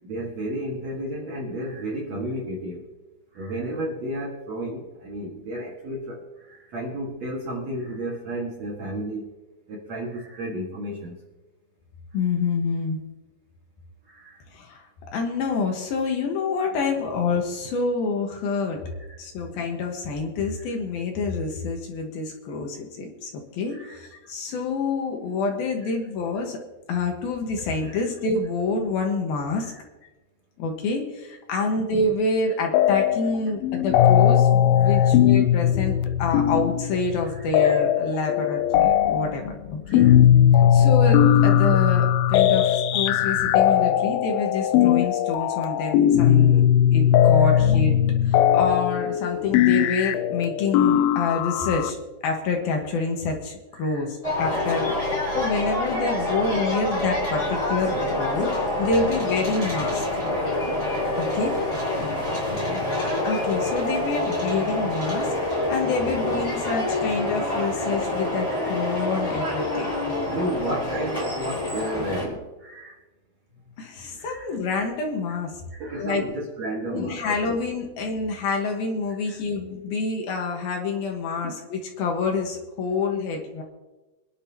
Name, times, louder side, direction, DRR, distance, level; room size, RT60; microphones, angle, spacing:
voice 1, 0.0-2.9 3.3-9.3 9.7-11.2 14.1-14.4 18.9-19.2 20.7-20.8 23.7-24.0 27.8-28.0 29.6-29.8 34.8-35.1 37.2-37.5 39.9-40.2 40.6-40.9 47.4-47.6 53.7-54.1 56.1-56.4 60.9-61.3 62.5-63.0 64.4-64.6 65.6-65.7 67.5-67.9 68.5-68.7 70.3-73.0 74.2-74.6 75.3-75.4 75.7-77.6 79.2-79.4 81.4-81.6, right 1 dB, 50° right, -3 dB, 2.3 m, -33 dB
voice 2, 12.1-13.0 14.5-14.9 15.1-18.8 19.2-26.6 26.9-29.7 30.6-39.6 39.9-40.1 40.7-46.6 46.9-55.0 55.3-60.1 61.2-61.5 63.2-69.9 73.8-75.6 75.9-76.2 76.9-83.6, left 4 dB, 65° left, 2 dB, 2.9 m, -27 dB
sound 1, 32.7-33.4 33.6-51.9, left 10 dB, 85° left, 2.1 m, -19 dB
sound 2, 54.2-72.3, left 1 dB, 10° left, 3.6 m, -26 dB
24.5 x 10.5 x 2.9 m, 1.1 s
omnidirectional pair, 5.0 m